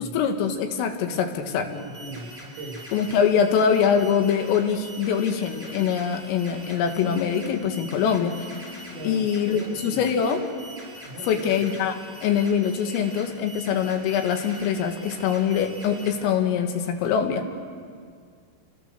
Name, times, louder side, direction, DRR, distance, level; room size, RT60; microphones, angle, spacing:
voice 1, 0.0-1.7 2.9-8.5 9.0-10.5 11.3-12.0 12.2-17.6, left 7 dB, 90° left, 5 dB, 4.3 m, -23 dB
sound 1, 1.7-16.1, right 1 dB, ahead, 7.3 m, -44 dB
voice 2, 1.7-2.8 7.9-8.1 8.9-10.0 11.0-11.5, right 2 dB, 80° right, -2 dB, 9.7 m, -39 dB
sound 2, 7.0-11.3, left 8 dB, 75° left, 5.5 m, -42 dB
29.0 x 23.0 x 6.7 m, 2.1 s
omnidirectional pair, 5.7 m